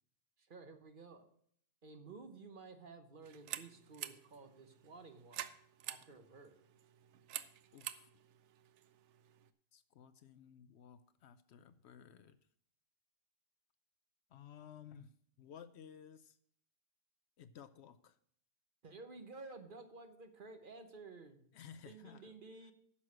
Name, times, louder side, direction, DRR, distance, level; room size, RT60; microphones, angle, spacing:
voice 1, 0.5-1.3 1.8-5.4 5.9-6.6 18.8-21.5 21.9-22.7, right 3 dB, 45° right, 7 dB, 1.0 m, -53 dB
sound 1, 3.2-9.5, right 11 dB, 70° right, 0.9 m, -49 dB
voice 2, 7.7-8.1 9.7-12.4 14.3-16.4 17.4-18.2 21.5-22.4 22.6-22.7, left 8 dB, 65° left, 13 dB, 0.8 m, -56 dB
9.7 x 6.3 x 6.1 m, 0.63 s
omnidirectional pair, 1.3 m